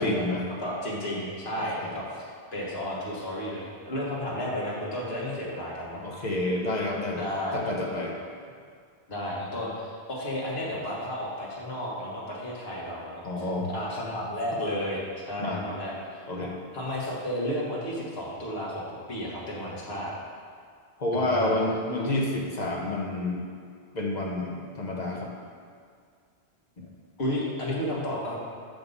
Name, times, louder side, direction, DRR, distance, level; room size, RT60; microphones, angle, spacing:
voice 1, 0.0-0.4 1.6-1.9 6.0-7.2 7.5-8.2 13.2-13.7 15.4-15.6 16.3-16.5 21.0-23.4 23.9-25.3, left 2 dB, 45° left, -2 dB, 1.1 m, -29 dB
voice 2, 0.6-6.0 7.1-7.6 9.1-15.0 15.3-16.2 16.7-20.1 21.1-21.5 27.2-28.4, left 1 dB, 70° left, -5 dB, 1.8 m, -32 dB
6.6 x 5.2 x 5.4 m, 2.1 s
omnidirectional pair, 1.1 m